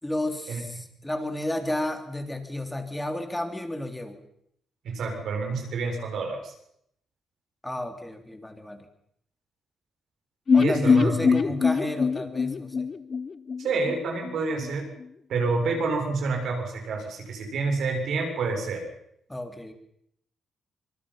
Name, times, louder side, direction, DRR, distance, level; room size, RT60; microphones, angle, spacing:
voice 1, 0.0-4.2 7.6-8.9 10.5-12.9 19.3-19.7, left 1 dB, 10° left, 5 dB, 3.6 m, -32 dB
voice 2, 4.8-6.5 10.5-11.4 13.6-14.9 15.3-18.8, right 3 dB, 70° right, 2 dB, 7.0 m, -28 dB
sound 1, 10.5-14.3 14.6-14.7 15.0-15.1, left 5 dB, 40° left, 1.0 m, -23 dB
25.5 x 22.5 x 5.8 m, 0.73 s
cardioid pair, 95°, 0 cm